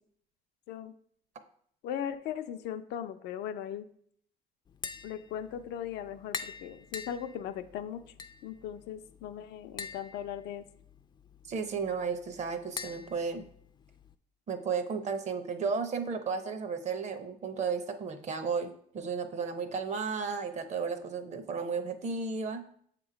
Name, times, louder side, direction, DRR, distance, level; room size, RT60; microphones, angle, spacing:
voice 1, 1.8-3.9 5.0-8.0 8.4-10.6, left 9 dB, 80° left, 9 dB, 0.5 m, -38 dB
Tap, 4.7-14.1, left 6 dB, 25° left, 0.4 m, -46 dB
voice 2, 11.5-13.4 14.5-22.7, right 5 dB, 45° right, 9 dB, 0.7 m, -34 dB
7.0 x 3.0 x 4.9 m, 0.63 s
cardioid pair, 110°, 17 cm